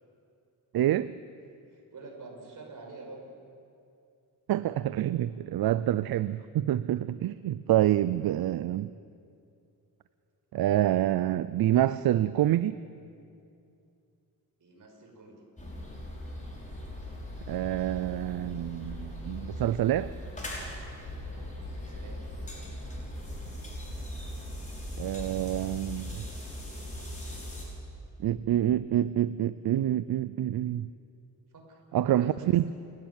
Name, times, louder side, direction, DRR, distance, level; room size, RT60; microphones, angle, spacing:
voice 1, 0.7-1.1 4.5-8.9 10.5-12.8 17.5-20.1 25.0-26.3 28.2-30.9 31.9-32.6, right 12 dB, 75° right, 16 dB, 0.5 m, -27 dB
voice 2, 1.7-3.3 14.6-15.4 21.7-22.5 31.5-32.7, right 3 dB, 55° right, 1 dB, 5.1 m, -48 dB
sound 1, 15.6-27.6, left 1 dB, 20° left, 5.7 m, -39 dB
28.5 x 12.0 x 9.7 m, 2.5 s
wide cardioid pair, 130°, 37 cm